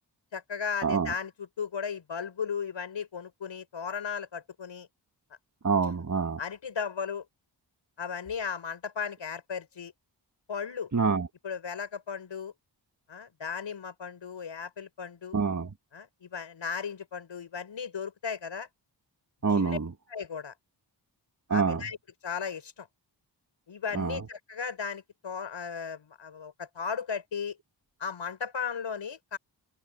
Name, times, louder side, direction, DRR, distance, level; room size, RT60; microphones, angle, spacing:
voice 1, 0.3-4.9 6.4-7.2 8.0-9.9 10.5-10.9 11.4-12.5 13.1-15.4 15.9-18.7 19.5-19.8 20.1-20.5 21.5-22.0 22.2-22.9 23.7-27.6 28.0-29.4, left 6 dB, 85° left, 6.3 m, -36 dB
voice 2, 0.8-1.1 5.6-6.4 10.9-11.3 15.3-15.7 19.4-19.9 21.5-21.8 23.9-24.2, right 5 dB, 40° right, 1.7 m, -26 dB
cardioid pair, 65°, 44 cm